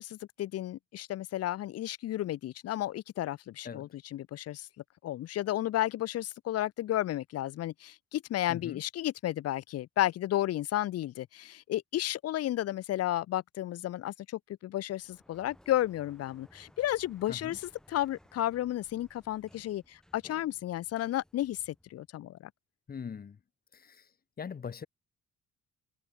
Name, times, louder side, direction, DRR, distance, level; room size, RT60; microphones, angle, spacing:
voice 1, 0.0-4.7 5.0-22.5, left 13 dB, 45° left, 0.5 m, -33 dB
voice 2, 8.5-8.8 17.3-17.6 22.9-23.4 23.7-24.1 24.4-24.9, left 6 dB, 25° left, 1.1 m, -41 dB
Sliding door, 14.9-22.1, equal, ahead, 7.5 m, -61 dB
cardioid pair, 155°, 34 cm